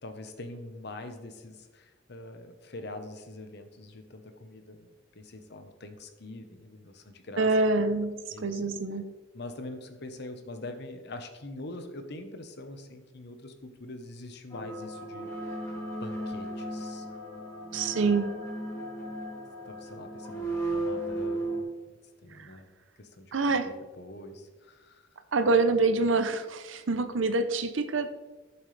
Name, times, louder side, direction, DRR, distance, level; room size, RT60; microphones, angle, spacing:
voice 1, 0.0-7.5 8.3-8.6 9.3-15.6 16.0-17.1 17.7-18.0 19.6-22.0 22.2-22.7 23.0-25.1, left 2 dB, 60° left, 7 dB, 1.0 m, -44 dB
voice 2, 7.4-9.0 17.7-18.4 22.4-22.5 23.3-23.7 25.3-28.1, right 3 dB, 85° right, 10 dB, 0.7 m, -26 dB
sound 1, 14.5-21.6, right 1 dB, 20° left, 2.7 m, -35 dB
12.5 x 7.3 x 3.3 m, 1.2 s
head